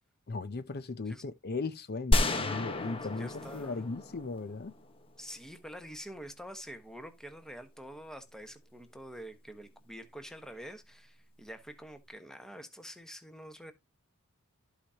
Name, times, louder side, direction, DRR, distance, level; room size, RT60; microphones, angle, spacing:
voice 1, 0.3-4.7, left 3 dB, 45° left, 0.6 m, -37 dB
sound 1, 2.1-5.0, left 1 dB, 25° left, 1.2 m, -31 dB
voice 2, 3.2-3.8 5.2-13.7, equal, 5° left, 1.2 m, -46 dB
14.5 x 5.0 x 2.8 m
head